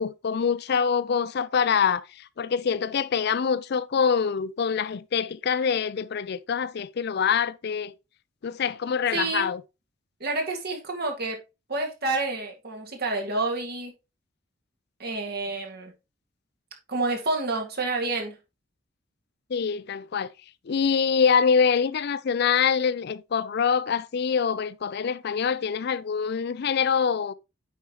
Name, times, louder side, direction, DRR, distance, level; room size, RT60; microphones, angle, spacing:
voice 1, 0.0-7.9 8.4-9.6 19.5-20.3 20.7-27.3, left 6 dB, 55° left, 0.4 m, -25 dB
voice 2, 9.1-9.5 10.2-11.4 11.7-13.9 15.0-15.9 16.9-18.4, right 3 dB, 55° right, 2.1 m, -29 dB
8.4 x 5.4 x 3.0 m
head